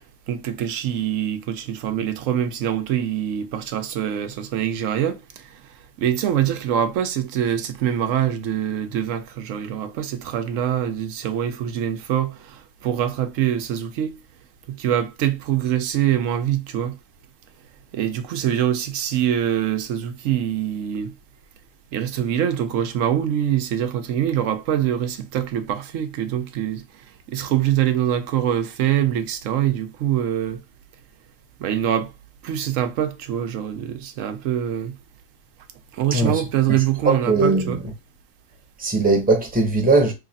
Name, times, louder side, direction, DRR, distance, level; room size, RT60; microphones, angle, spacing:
voice 1, 0.3-5.5 6.0-14.2 14.7-17.0 17.9-21.1 21.9-26.8 27.3-30.6 31.6-32.1 32.4-34.9 35.9-37.8, right 10 dB, 85° right, 1.0 m, -24 dB
voice 2, 36.1-36.4 37.0-37.8 38.8-40.1, right 3 dB, 10° right, 0.7 m, -19 dB
3.1 x 2.4 x 4.0 m
omnidirectional pair, 1.3 m